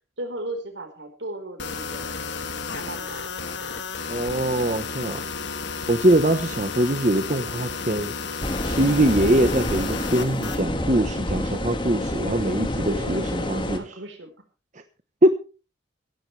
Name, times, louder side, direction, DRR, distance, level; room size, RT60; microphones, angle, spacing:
voice 1, 0.2-2.1 2.7-3.3 12.8-14.4, right 1 dB, 80° right, 4.6 m, -36 dB
sound 1, 1.6-10.6, left 5 dB, 75° left, 1.7 m, -32 dB
voice 2, 4.1-5.2 5.9-8.1 8.6-13.8 15.2-15.3, right 1 dB, 40° right, 1.0 m, -22 dB
sound 2, 8.4-13.8, left 1 dB, 25° left, 2.0 m, -28 dB
17.0 x 14.5 x 3.4 m
head